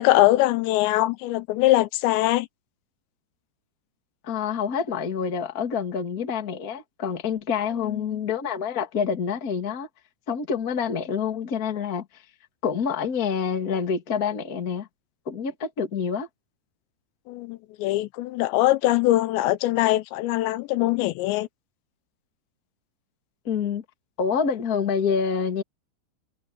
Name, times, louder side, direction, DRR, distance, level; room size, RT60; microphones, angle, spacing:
voice 1, 0.0-2.5 7.8-8.0 17.3-21.5, left 16 dB, 80° left, 2.9 m, -22 dB
voice 2, 4.2-9.9 10.3-12.0 12.6-14.9 15.2-16.3 23.4-23.8 24.2-25.6, left 6 dB, 35° left, 1.5 m, -27 dB
omnidirectional pair, 5.1 m